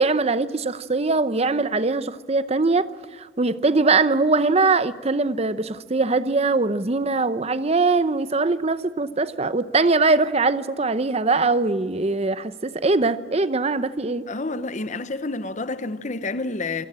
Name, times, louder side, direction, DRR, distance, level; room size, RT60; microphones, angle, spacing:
voice 1, 0.0-2.9 3.4-14.2, right 3 dB, 35° right, 0.7 m, -21 dB
voice 2, 14.3-16.9, left 3 dB, 40° left, 0.8 m, -29 dB
26.5 x 17.5 x 8.8 m
head